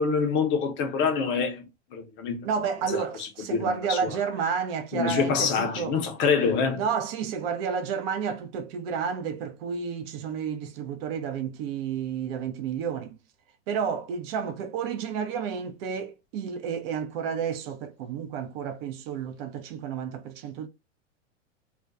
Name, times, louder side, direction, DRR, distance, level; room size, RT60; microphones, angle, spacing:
voice 1, 0.0-1.6 1.9-2.5 3.5-4.1 4.9-6.8, left 5 dB, 30° left, 0.6 m, -25 dB
voice 2, 2.4-6.0 6.8-13.2 13.7-20.7, right 6 dB, 50° right, 0.7 m, -31 dB
2.3 x 2.2 x 2.5 m
hypercardioid pair, 110°, 38 cm